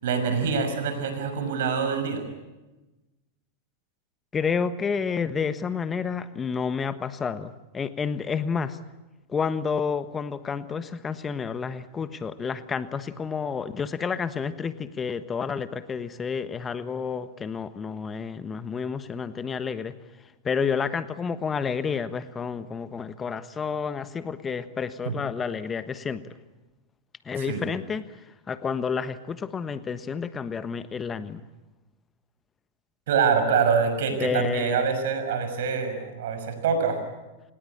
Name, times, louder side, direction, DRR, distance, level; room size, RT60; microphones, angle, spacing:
voice 1, 0.0-2.2 25.1-25.2 27.3-27.6 33.1-37.0, right 6 dB, 65° right, 8 dB, 6.0 m, -25 dB
voice 2, 4.3-8.8 9.3-20.0 20.4-26.3 27.2-28.2 28.5-31.4 34.2-34.9, left 6 dB, 20° left, 12 dB, 1.3 m, -30 dB
27.5 x 19.5 x 8.7 m, 1.1 s
hypercardioid pair, 100°, 0 cm